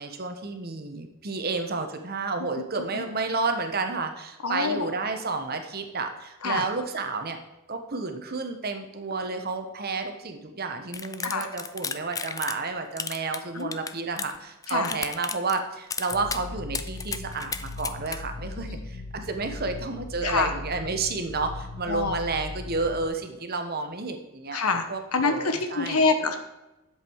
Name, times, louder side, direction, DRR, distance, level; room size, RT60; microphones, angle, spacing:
voice 1, 0.0-7.4 7.7-24.6 24.9-26.0, right 3 dB, 45° right, 6 dB, 1.2 m, -31 dB
voice 2, 4.4-4.9 6.4-6.6 11.2-11.5 13.5-13.9 14.7-14.9 18.6-18.8 20.2-20.5 21.9-22.2 24.5-24.8 25.1-26.4, left 4 dB, 80° left, 7 dB, 1.1 m, -26 dB
sound 1, 10.9-12.7 13.0-14.4 14.6-15.6 15.9-16.4 16.7-18.2, left 6 dB, 15° left, 0.4 m, -33 dB
sound 2, 16.1-23.1, left 2 dB, 45° left, 1.2 m, -39 dB
11.0 x 7.6 x 4.7 m, 0.98 s
head